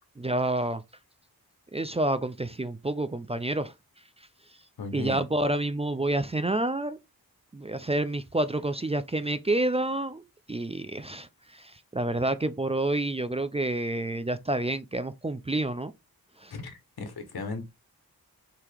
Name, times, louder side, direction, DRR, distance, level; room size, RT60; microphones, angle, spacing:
voice 1, 0.2-0.8 1.7-3.7 4.9-7.0 7.5-10.2 10.5-15.9 16.4-16.5, right 2 dB, 15° right, 0.4 m, -28 dB
voice 2, 4.8-5.2 16.5-17.6, left 3 dB, 85° left, 1.3 m, -36 dB
4.8 x 2.9 x 3.4 m
wide cardioid pair, 65°, 37 cm